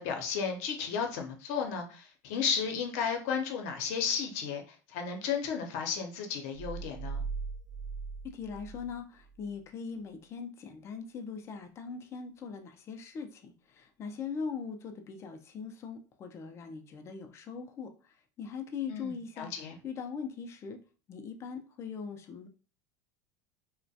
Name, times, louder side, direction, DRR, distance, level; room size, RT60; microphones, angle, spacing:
voice 1, 0.0-4.6 4.9-7.2 18.9-19.1 19.4-19.8, left 6 dB, 65° left, 3 dB, 0.7 m, -33 dB
sound 1, 6.5-9.5, right 5 dB, 50° right, 0.8 m, -39 dB
voice 2, 8.2-19.5 19.8-20.8 21.1-22.5, left 6 dB, 30° left, 5 dB, 0.4 m, -41 dB
2.3 x 2.1 x 2.6 m, 0.36 s
supercardioid pair, 125°, 9 cm